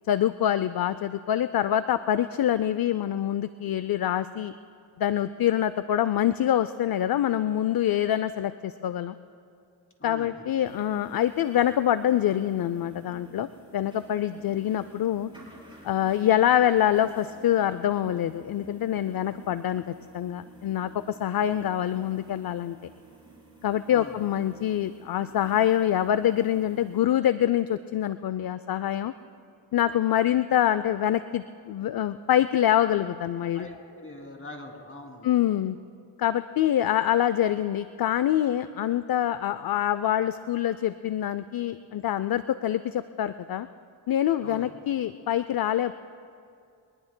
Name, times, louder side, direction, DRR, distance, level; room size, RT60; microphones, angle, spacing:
voice 1, 0.1-4.5 5.0-9.2 10.0-13.5 13.7-15.3 15.8-19.8 20.1-22.8 23.6-29.1 29.7-33.7 35.2-35.8 36.2-43.7 44.1-45.9, left 11 dB, 50° left, 13 dB, 0.5 m, -25 dB
voice 2, 10.0-10.4 23.9-24.2 33.5-35.3 44.4-44.7, left 1 dB, 25° left, 2 dB, 2.8 m, -42 dB
sound 1, 10.6-27.0, right 1 dB, 10° right, 4.5 m, -50 dB
23.5 x 19.5 x 2.2 m, 2.4 s
cardioid pair, 55°, 46 cm